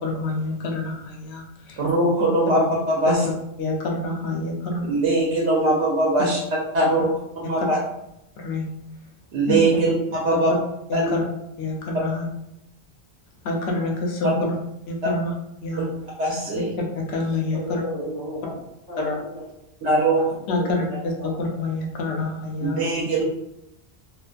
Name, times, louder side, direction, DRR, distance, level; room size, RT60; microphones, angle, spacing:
voice 1, 0.0-1.8 3.2-3.3 3.6-4.9 7.6-7.7 8.4-8.7 9.5-9.6 10.3-10.4 10.9-11.2 11.6-12.3 13.4-14.5 14.9-15.3 15.6-15.8 16.6-16.7 17.0-17.8 19.0-19.2 20.5-22.8, left 2 dB, 75° left, 1 dB, 0.8 m, -27 dB
voice 2, 1.8-3.2 4.9-6.4 6.7-7.1 7.4-7.8 9.3-10.5 10.9-11.1 16.2-16.7 19.8-20.2 22.6-23.2, right 2 dB, 85° right, -4 dB, 0.9 m, -21 dB
voice 3, 17.5-18.6 18.9-19.4 20.2-21.3, equal, 20° left, -8 dB, 1.2 m, -34 dB
2.4 x 2.2 x 2.4 m, 0.85 s
omnidirectional pair, 1.1 m